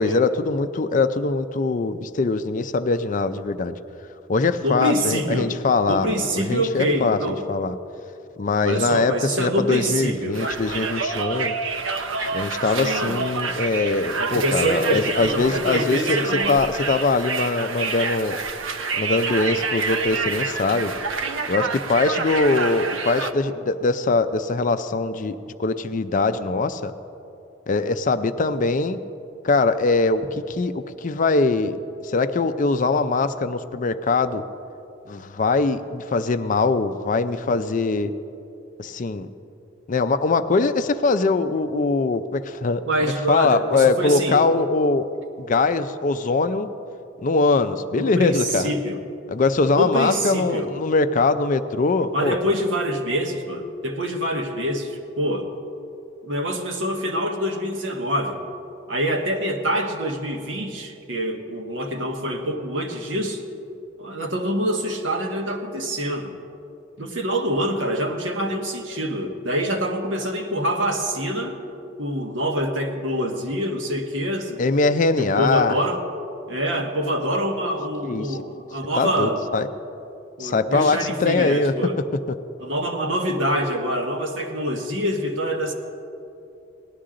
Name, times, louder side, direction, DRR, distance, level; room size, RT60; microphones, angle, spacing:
voice 1, 0.0-3.8 4.3-7.8 8.4-11.6 12.3-18.4 19.0-20.9 21.5-26.9 27.7-29.0 29.4-34.4 35.1-38.1 38.8-39.3 39.9-45.1 45.4-46.7 47.2-48.7 49.3-52.4 74.6-75.8 78.0-78.4 79.0-79.7 80.4-81.7, left 3 dB, 40° left, 11 dB, 0.4 m, -22 dB
voice 2, 4.6-5.6 5.9-7.4 8.6-10.4 12.8-13.2 14.2-16.7 42.8-44.4 48.0-49.0 49.7-50.7 52.1-55.5 56.2-58.4 58.9-63.4 64.0-66.3 67.0-71.6 72.0-74.6 75.2-76.0 76.5-79.4 80.4-82.0 82.6-85.7, equal, 70° right, 3 dB, 1.3 m, -25 dB
Conversation, 10.3-23.3, right 4 dB, 90° right, 0.7 m, -27 dB
18.0 x 11.5 x 3.8 m, 2.7 s
head